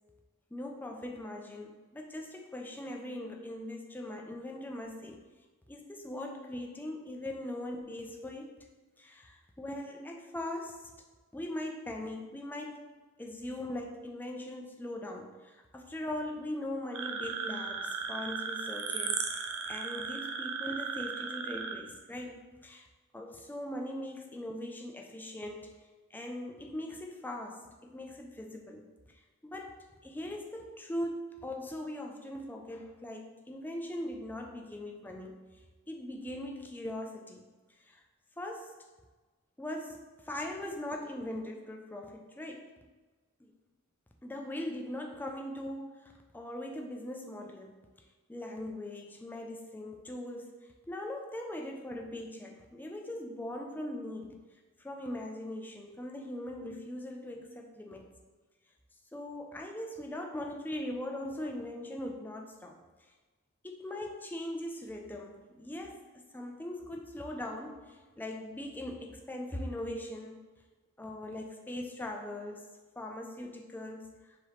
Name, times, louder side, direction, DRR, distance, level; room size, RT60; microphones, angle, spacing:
voice 1, 0.5-5.2 5.7-8.5 9.0-10.8 11.3-12.8 13.2-22.9 23.1-25.7 26.1-28.9 29.4-35.5 35.9-37.4 37.8-38.0 38.4-38.7 39.6-42.8 43.4-43.5 44.2-47.9 48.3-50.6 50.9-54.4 54.8-58.1 59.1-62.8 63.6-70.5 71.0-74.4, left 1 dB, 10° left, 2 dB, 0.3 m, -40 dB
sound 1, 16.9-21.7, right 5 dB, 85° right, 0.5 m, -36 dB
4.8 x 2.9 x 3.0 m, 1.3 s
head